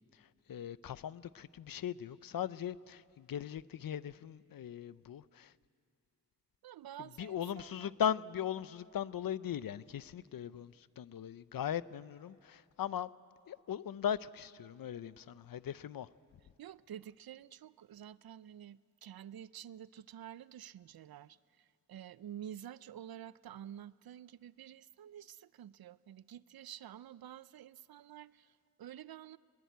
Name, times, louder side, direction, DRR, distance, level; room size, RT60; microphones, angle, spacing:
voice 1, 0.1-5.5 7.2-13.1 13.5-16.1, left 9 dB, 75° left, 0.6 m, -39 dB
voice 2, 6.6-7.9 16.6-29.4, right 10 dB, 85° right, 0.5 m, -50 dB
22.0 x 21.5 x 9.3 m
wide cardioid pair, 105°, 35 cm